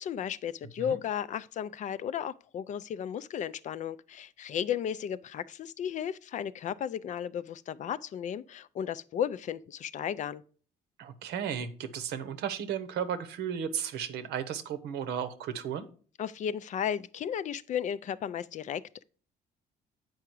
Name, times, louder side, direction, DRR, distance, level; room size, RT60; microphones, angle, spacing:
voice 1, 0.0-10.4 16.2-19.0, left 9 dB, 45° left, 0.4 m, -34 dB
voice 2, 11.0-15.9, right 8 dB, 80° right, 0.9 m, -34 dB
8.0 x 4.8 x 4.5 m
cardioid pair, 110°, 17 cm